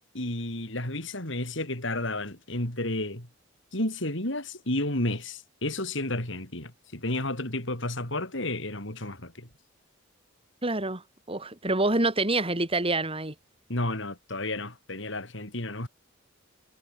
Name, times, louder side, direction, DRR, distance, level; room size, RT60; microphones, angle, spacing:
voice 1, 0.1-3.3 3.7-9.5 13.7-15.9, left 1 dB, 65° left, 5.7 m, -32 dB
voice 2, 10.6-11.0 11.3-13.3, right 2 dB, 30° right, 3.7 m, -26 dB
head